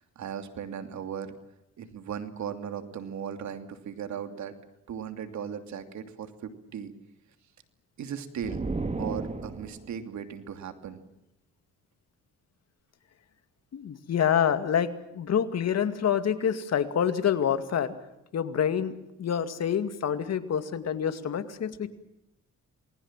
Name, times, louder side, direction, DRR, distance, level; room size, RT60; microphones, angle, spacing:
voice 1, 0.0-1.3 1.8-4.5 4.9-6.9 8.0-8.7 9.0-11.0, right 8 dB, 70° right, 9 dB, 2.9 m, -37 dB
sound 1, 8.4-10.0, right 3 dB, 25° right, 2.2 m, -33 dB
voice 2, 13.7-17.9 18.3-21.9, left 8 dB, 60° left, 10 dB, 2.3 m, -27 dB
28.0 x 20.5 x 7.5 m, 0.87 s
cardioid pair, 90°, 30 cm